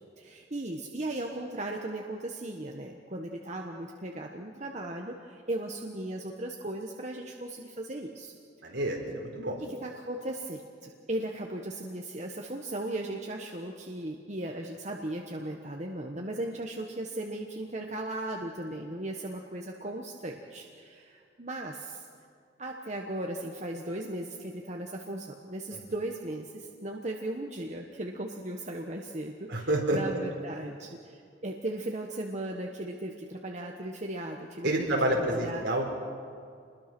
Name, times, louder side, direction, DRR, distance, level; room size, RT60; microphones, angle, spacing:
voice 1, 0.2-8.3 9.6-22.1 22.6-34.9 35.2-35.6, right 1 dB, 35° right, 1 dB, 1.3 m, -37 dB
voice 2, 8.6-9.6 25.7-25.8 29.5-30.0 34.6-35.9, right 1 dB, 65° right, 1 dB, 4.2 m, -28 dB
27.0 x 21.5 x 6.1 m, 2.3 s
head